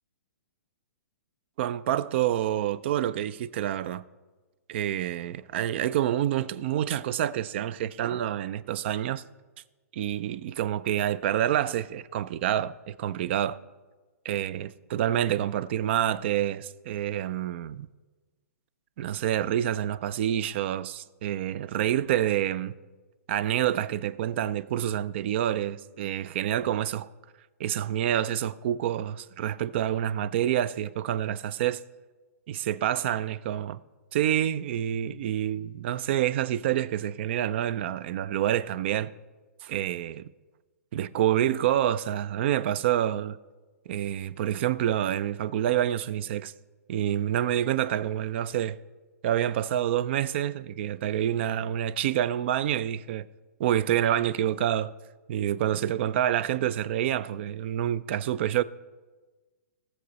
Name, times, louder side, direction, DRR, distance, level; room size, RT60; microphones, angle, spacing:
voice 1, 1.6-4.0 4.7-9.2 9.9-13.6 14.2-17.9 19.0-22.8 23.3-27.1 27.6-31.8 32.5-33.8 34.1-39.1 39.6-40.3 40.9-43.4 43.9-46.5 46.9-48.8 49.2-53.3 53.6-54.9 55.3-58.6, right 11 dB, 45° right, 0.4 m, -27 dB
17.5 x 7.1 x 4.0 m
hypercardioid pair, 150°, 9 cm